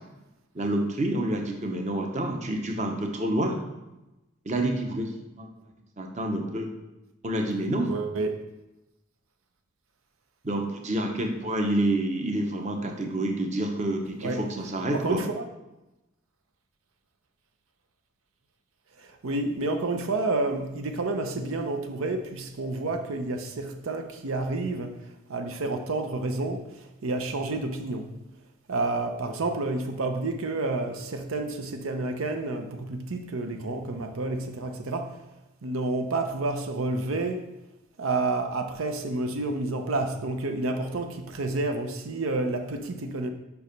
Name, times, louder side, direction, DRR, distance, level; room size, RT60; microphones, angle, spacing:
voice 1, 0.5-3.6 4.5-5.1 5.4-5.5 6.0-6.7 7.2-7.9 10.4-15.2, right 1 dB, 35° right, 3 dB, 0.8 m, -28 dB
voice 2, 7.9-8.3 14.2-14.4 14.9-15.5 19.0-24.9 25.3-26.7 27.0-28.1 28.7-35.2 35.6-37.4 38.0-43.3, right 2 dB, 90° right, 5 dB, 0.7 m, -29 dB
5.4 x 4.6 x 5.2 m, 0.99 s
head